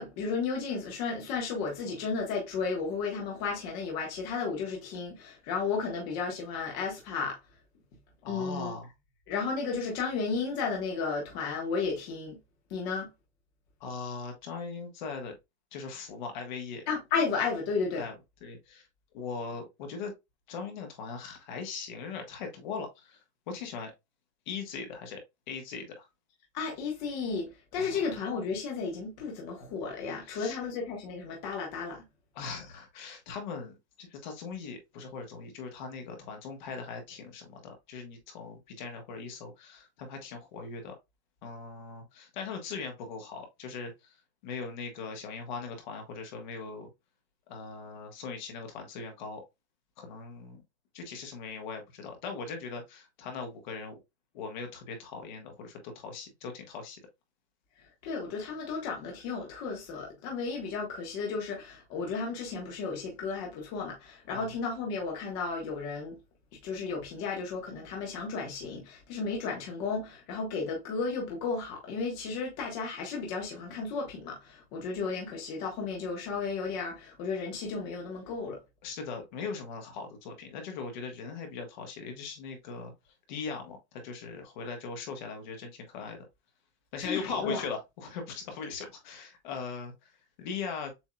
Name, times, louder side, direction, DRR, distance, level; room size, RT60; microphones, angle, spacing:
voice 1, 0.0-7.4 8.3-8.7 9.3-12.4 12.7-13.1 16.9-18.0 26.5-32.0 58.0-66.2 66.6-78.6 87.0-87.6, left 4 dB, 25° left, 1.1 m, -33 dB
voice 2, 8.2-8.9 13.8-15.3 15.7-16.8 18.0-18.1 18.4-18.9 19.1-20.1 20.5-23.2 23.5-23.9 24.5-25.2 25.5-26.1 27.8-28.0 30.2-30.6 32.3-40.9 41.4-44.2 44.4-46.9 47.5-49.4 50.0-50.6 50.9-54.0 54.3-57.0 64.3-64.5 78.8-82.9 83.3-86.2 86.9-90.9, left 5 dB, 45° left, 1.3 m, -40 dB
7.1 x 2.8 x 2.3 m
supercardioid pair, 175°, 34 cm